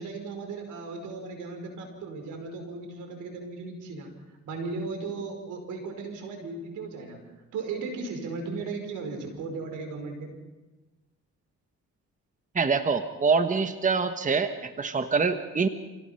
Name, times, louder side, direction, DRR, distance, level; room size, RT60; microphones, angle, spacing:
voice 1, 0.0-7.2 7.5-10.3, right 4 dB, 85° right, 4 dB, 5.1 m, -36 dB
voice 2, 12.5-15.7, right 5 dB, 25° right, 9 dB, 1.2 m, -25 dB
27.5 x 17.0 x 5.7 m, 1.2 s
cardioid pair, 90°, 30 cm